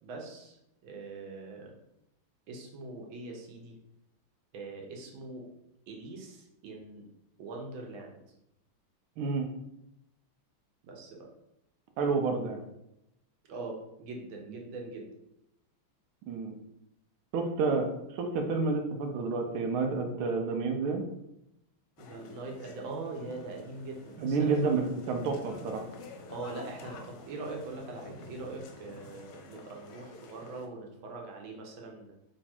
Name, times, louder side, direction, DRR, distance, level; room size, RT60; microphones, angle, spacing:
voice 1, 0.0-1.7 2.5-3.8 4.5-5.5 5.9-7.1 7.4-8.3 10.8-11.3 13.5-15.1 22.0-24.7 26.3-32.1, right 3 dB, 75° right, 0 dB, 1.5 m, -42 dB
voice 2, 9.2-9.5 12.0-12.6 16.3-16.5 17.3-21.0 24.2-25.8, right 4 dB, 90° right, 4 dB, 1.5 m, -29 dB
sound 1, 22.0-30.7, left 3 dB, 70° left, 1.2 m, -49 dB
3.4 x 3.1 x 4.2 m, 0.83 s
omnidirectional pair, 2.3 m